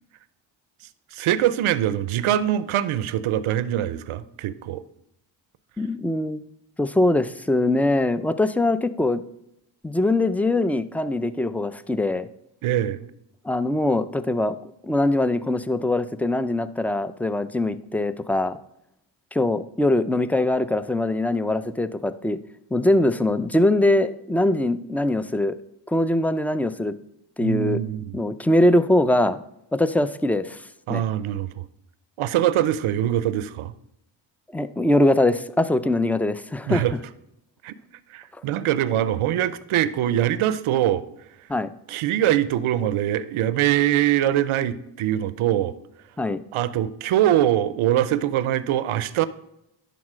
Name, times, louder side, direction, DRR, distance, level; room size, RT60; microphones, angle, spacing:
voice 1, 1.1-4.8 12.6-13.1 27.4-28.1 30.9-31.5 32.2-33.7 36.7-36.9 37.6-37.7 38.1-41.0 41.9-45.7 46.5-49.3, right 12 dB, 80° right, 0.6 m, -23 dB
voice 2, 5.8-6.4 6.8-9.2 9.8-12.3 13.4-18.6 19.3-22.4 22.7-25.6 25.9-26.9 27.4-27.8 28.1-29.4 29.7-30.6 30.9-31.0 34.5-36.8 41.5-41.7 46.2-46.4, left 1 dB, 5° left, 0.4 m, -22 dB
11.0 x 4.1 x 6.1 m
cardioid pair, 70°, 49 cm